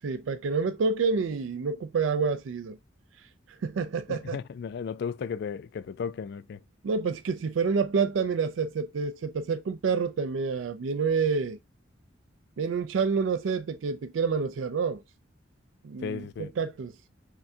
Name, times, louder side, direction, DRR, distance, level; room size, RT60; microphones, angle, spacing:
voice 1, 0.0-2.8 3.6-4.4 6.8-11.6 12.6-15.0 15.8-16.9, right 5 dB, 80° right, 0.4 m, -28 dB
voice 2, 4.1-6.6 16.0-16.5, left 6 dB, 60° left, 0.3 m, -35 dB
5.8 x 2.2 x 2.7 m
head